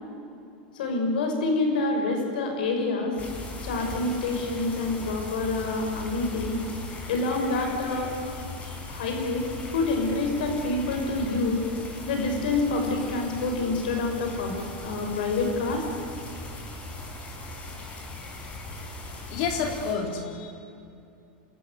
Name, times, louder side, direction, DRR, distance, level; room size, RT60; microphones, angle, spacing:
voice 1, 0.7-3.2 3.6-6.6 7.1-8.1 8.9-11.6 12.0-14.6 14.8-15.8, left 3 dB, 80° left, 3 dB, 6.2 m, -27 dB
sound 1, 3.2-19.9, left 2 dB, 25° left, 5.3 m, -39 dB
voice 2, 19.3-20.5, left 5 dB, 60° left, 2 dB, 4.1 m, -29 dB
27.0 x 14.0 x 9.6 m, 2.6 s
hypercardioid pair, 115°, 5 cm